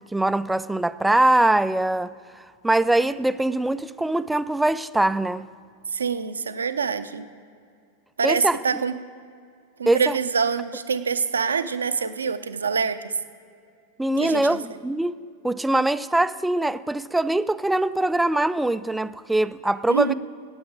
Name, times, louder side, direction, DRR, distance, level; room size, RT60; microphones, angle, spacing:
voice 1, 0.0-2.1 2.6-5.5 8.2-8.8 9.9-10.2 14.0-15.2 15.4-20.1, right 1 dB, 5° right, 14 dB, 0.3 m, -22 dB
voice 2, 5.9-7.3 8.2-8.9 9.8-13.1 14.2-14.6 19.9-20.1, right 6 dB, 70° right, 11 dB, 0.6 m, -25 dB
9.5 x 8.6 x 8.6 m, 2.3 s
figure-of-eight pair, 90°, 0 cm